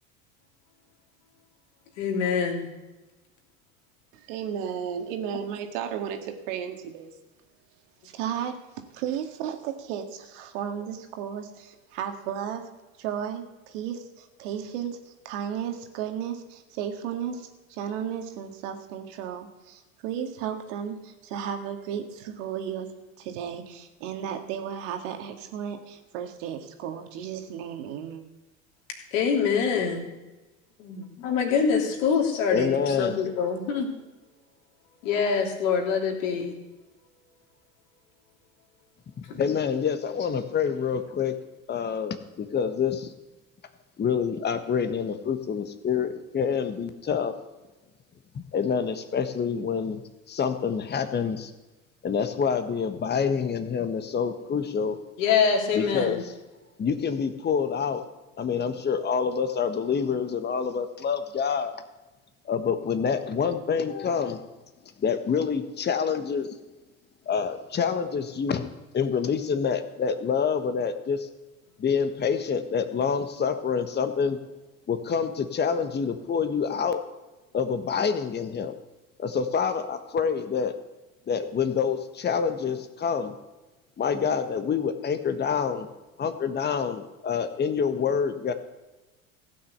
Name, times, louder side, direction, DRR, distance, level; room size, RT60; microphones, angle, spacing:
voice 1, 2.0-2.7 29.1-30.1 30.8-33.9 35.0-36.6 55.2-56.2, left 6 dB, 65° left, 1 dB, 3.2 m, -25 dB
voice 2, 4.1-7.2 8.0-8.6 8.9-12.6 13.0-22.9 23.2-28.2, right 8 dB, 60° right, 6 dB, 1.9 m, -34 dB
voice 3, 32.5-33.2 39.3-41.3 41.7-43.1 44.0-47.3 48.5-50.0 50.3-51.5 52.0-55.0 55.7-56.2 56.8-58.0 58.4-61.7 62.4-64.4 65.0-66.5 67.3-71.3 71.8-74.4 74.9-77.0 77.5-78.7 79.2-80.7 81.3-83.3 84.0-85.9 86.2-88.5, left 6 dB, 25° left, 9 dB, 1.3 m, -27 dB
16.0 x 6.4 x 8.1 m, 1.1 s
hypercardioid pair, 80°, 41 cm